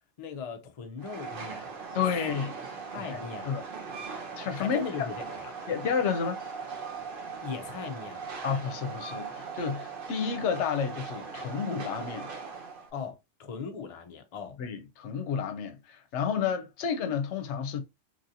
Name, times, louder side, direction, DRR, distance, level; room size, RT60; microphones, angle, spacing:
voice 1, 0.2-1.7 2.9-3.5 4.5-5.5 7.4-8.2 12.9-14.6, left 6 dB, 50° left, 0.4 m, -39 dB
Train, 1.0-12.9, right 5 dB, 55° right, 0.9 m, -40 dB
voice 2, 1.9-2.5 3.0-3.6 3.9-4.0 4.4-5.1 5.7-6.4 8.4-12.3 14.6-17.8, left 7 dB, 75° left, 0.9 m, -31 dB
3.0 x 2.7 x 2.6 m
omnidirectional pair, 1.2 m